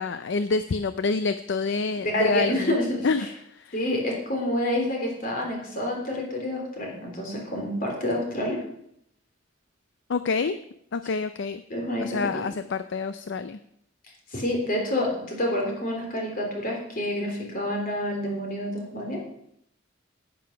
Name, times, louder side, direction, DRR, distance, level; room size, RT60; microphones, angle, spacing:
voice 1, 0.0-2.8 3.0-3.8 10.1-10.6 10.9-11.6 12.0-13.6, left 4 dB, 65° left, 11 dB, 0.5 m, -27 dB
voice 2, 2.1-3.1 3.7-8.6 11.7-12.2 14.3-19.2, left 1 dB, 45° left, 0 dB, 3.5 m, -28 dB
9.7 x 9.2 x 5.8 m, 0.71 s
head